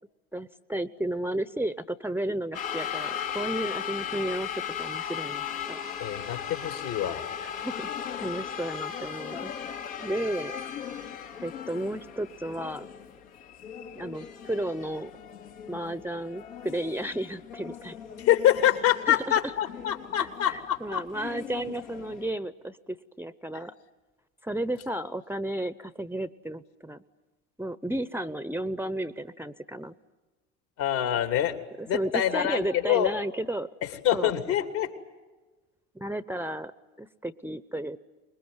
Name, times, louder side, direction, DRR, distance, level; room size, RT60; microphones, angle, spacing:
voice 1, 0.3-4.5 4.8-5.8 7.4-7.9 8.2-9.5 10.0-10.6 11.4-12.9 13.9-15.1 15.7-17.9 19.1-19.5 20.5-23.7 24.4-27.0 27.6-29.9 31.8-33.7 34.1-34.3 35.9-36.7 37.0-38.0, right 1 dB, 5° right, 15 dB, 0.8 m, -33 dB
sound 1, 2.5-22.3, left 8 dB, 80° left, 2.5 m, -38 dB
voice 2, 6.0-7.2 18.2-21.0 30.8-31.6 31.9-33.1 33.8-34.9, left 11 dB, 65° left, 7 dB, 3.0 m, -25 dB
25.0 x 21.0 x 9.7 m, 1.2 s
hypercardioid pair, 75°, 40 cm